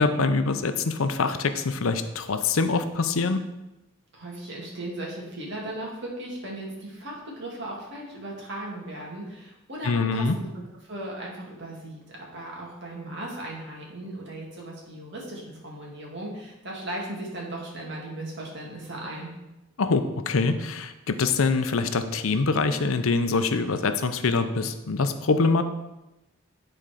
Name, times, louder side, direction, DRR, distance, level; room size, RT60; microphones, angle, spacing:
voice 1, 0.0-3.4 9.8-10.4 19.8-25.6, left 4 dB, 80° left, 9 dB, 0.6 m, -24 dB
voice 2, 4.1-19.3, right 1 dB, 60° right, -2 dB, 2.2 m, -37 dB
9.6 x 4.4 x 5.0 m, 0.98 s
head